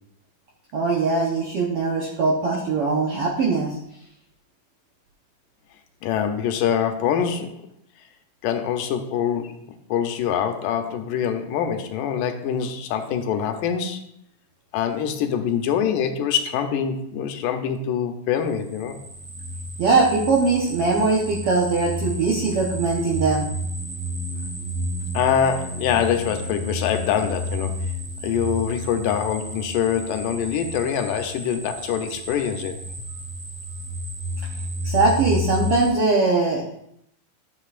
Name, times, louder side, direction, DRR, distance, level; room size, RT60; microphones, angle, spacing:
voice 1, 0.7-3.8 19.8-23.5 34.8-36.7, right 3 dB, 70° right, -3 dB, 1.4 m, -21 dB
voice 2, 6.0-7.6 8.4-9.6 9.9-14.1 14.7-19.0 25.1-27.9 28.2-32.8, left 8 dB, 80° left, 6 dB, 2.3 m, -24 dB
sound 1, 18.5-35.9, equal, 50° right, 3.8 m, -31 dB
12.0 x 7.5 x 2.5 m, 0.74 s
omnidirectional pair, 3.9 m